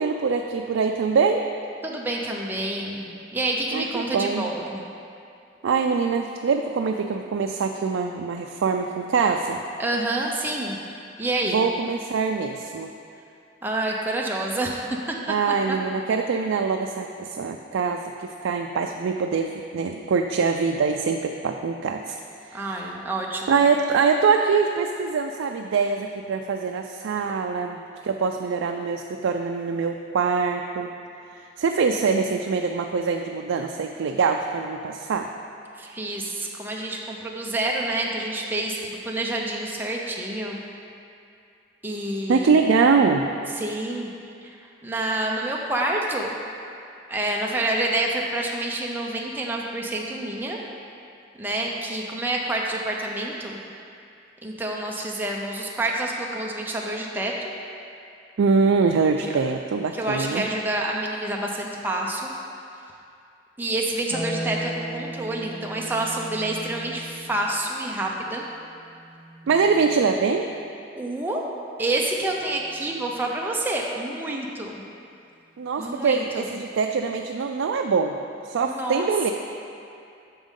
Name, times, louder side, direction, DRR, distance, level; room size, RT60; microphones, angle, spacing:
voice 1, 0.0-1.4 3.7-4.4 5.6-9.6 11.5-12.9 15.3-22.2 22.4-22.8 23.5-30.9 31.4-35.3 42.3-43.2 58.4-60.4 69.5-70.5 75.6-78.2 78.4-79.3, right 5 dB, 90° right, 3 dB, 0.3 m, -23 dB
voice 2, 1.8-4.8 9.8-10.8 11.2-11.7 13.6-15.8 22.5-23.6 35.8-40.6 41.8-42.6 43.6-44.1 44.4-46.3 47.1-50.6 51.4-53.6 54.4-57.5 59.2-59.4 59.9-62.3 63.6-68.4 71.0-71.4 71.8-74.8 75.8-76.6 78.6-79.1, right 2 dB, 10° right, -2 dB, 0.6 m, -28 dB
Harp, 64.1-70.6 72.2-73.2, equal, 50° right, 1.3 m, -38 dB
8.8 x 6.2 x 3.7 m, 2.5 s
head